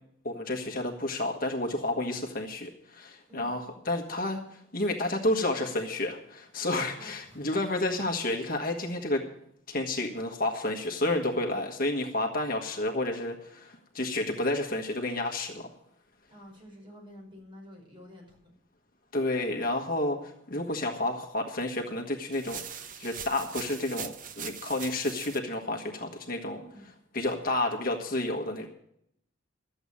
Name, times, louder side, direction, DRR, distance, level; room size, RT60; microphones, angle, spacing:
voice 1, 0.2-9.3 9.7-15.7 19.1-26.6 27.1-28.7, left 2 dB, 45° left, 2 dB, 1.5 m, -30 dB
voice 2, 7.0-7.4 16.3-18.4 26.5-26.9, equal, 25° right, 0 dB, 5.5 m, -49 dB
sound 1, 22.3-25.4, right 8 dB, 40° right, 0.8 m, -41 dB
13.5 x 8.0 x 8.5 m, 0.73 s
head